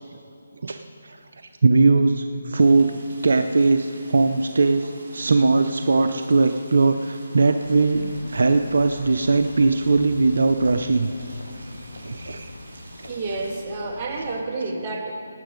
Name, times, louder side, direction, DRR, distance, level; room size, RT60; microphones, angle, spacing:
voice 1, 0.6-1.2 1.6-2.9 3.2-11.1 11.6-12.5 13.0-13.1, right 3 dB, 65° right, 7 dB, 0.6 m, -20 dB
sound 1, 2.6-13.6, right 1 dB, 50° right, 4.0 m, -48 dB
sound 2, 7.6-14.4, left 1 dB, 75° left, 1.2 m, -41 dB
voice 2, 13.0-15.1, right 3 dB, 30° right, 0 dB, 1.6 m, -29 dB
18.0 x 8.9 x 5.1 m, 2.5 s
figure-of-eight pair, 155°, 0 cm